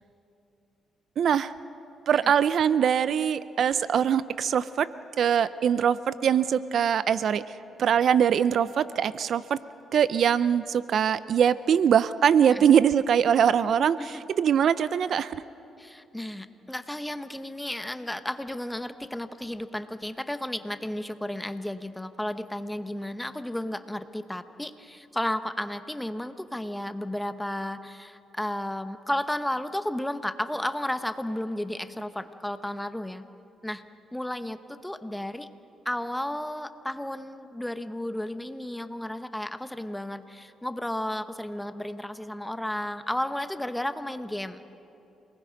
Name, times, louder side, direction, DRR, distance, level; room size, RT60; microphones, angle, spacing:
voice 1, 1.2-1.5 2.1-4.9 5.2-7.4 7.8-9.6 9.9-14.0 14.4-15.4, right 8 dB, 60° right, 16 dB, 0.4 m, -22 dB
voice 2, 15.8-33.2 33.6-33.8 34.1-35.5 35.8-44.7, left 1 dB, 5° left, 11 dB, 0.9 m, -33 dB
27.5 x 20.0 x 5.2 m, 2.9 s
cardioid pair, 90°, 0 cm